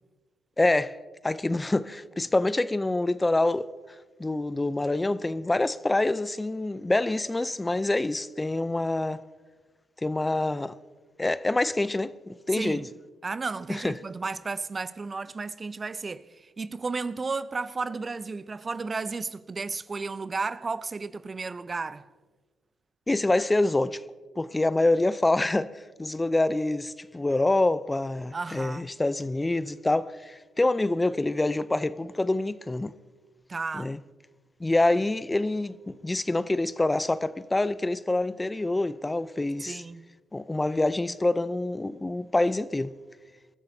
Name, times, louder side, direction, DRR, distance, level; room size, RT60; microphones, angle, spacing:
voice 1, 0.6-1.0 1.2-3.7 4.2-9.2 10.0-10.7 11.2-12.8 13.7-13.9 23.1-24.0 24.4-32.9 33.7-34.0 34.6-39.8 40.3-42.9, left 2 dB, 20° left, 0.5 m, -26 dB
voice 2, 12.6-12.9 13.2-22.1 28.3-28.9 33.5-33.9 39.7-40.1, right 4 dB, 35° right, 0.6 m, -33 dB
27.0 x 14.0 x 2.7 m
hypercardioid pair, 50°, 0 cm